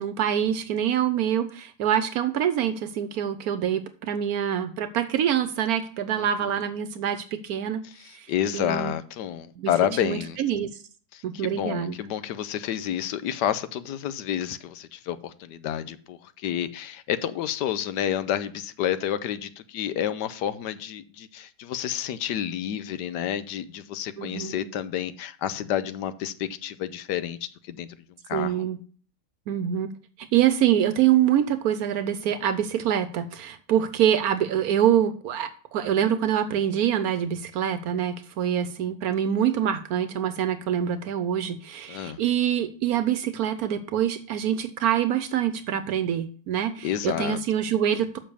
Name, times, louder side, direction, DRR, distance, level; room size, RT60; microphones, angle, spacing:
voice 1, 0.0-7.8 8.0-8.3 8.5-8.9 9.6-9.7 10.0-10.7 11.2-12.0 24.2-24.7 28.3-28.8 29.5-29.9 30.3-48.2, right 10 dB, 70° right, 11 dB, 1.0 m, -25 dB
voice 2, 8.3-10.4 11.1-27.4 27.7-27.9 28.3-28.5 41.9-42.2 46.8-47.4, left 10 dB, 85° left, 13 dB, 1.3 m, -29 dB
6.6 x 5.8 x 7.0 m, 0.44 s
omnidirectional pair, 1.8 m